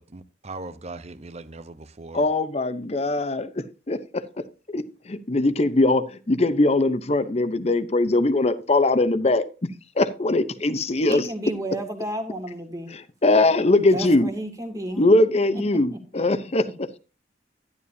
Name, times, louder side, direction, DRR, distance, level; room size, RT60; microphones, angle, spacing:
voice 1, 0.1-2.3, right 2 dB, 40° right, 0.8 m, -39 dB
voice 2, 2.1-4.2 4.7-9.4 10.0-11.2 13.2-14.3 15.0-17.0, left 2 dB, 35° left, 0.7 m, -21 dB
voice 3, 11.0-12.9 13.9-15.0 15.5-15.6 15.9-16.2 16.6-16.7, right 1 dB, 20° right, 2.0 m, -32 dB
11.5 x 11.0 x 2.7 m
head